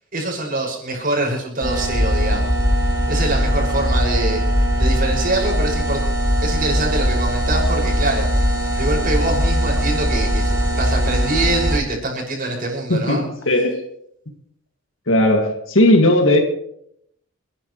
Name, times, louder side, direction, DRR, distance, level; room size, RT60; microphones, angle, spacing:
voice 1, 0.1-2.5 3.1-4.4 4.8-6.0 6.4-8.3 8.7-13.2, right 2 dB, 45° right, -1 dB, 5.9 m, -24 dB
sound 1, 1.6-11.8, equal, 15° right, 4.6 m, -20 dB
voice 2, 12.9-13.9 15.1-16.4, left 1 dB, 80° left, 2 dB, 2.1 m, -16 dB
30.0 x 10.5 x 3.2 m, 0.70 s
head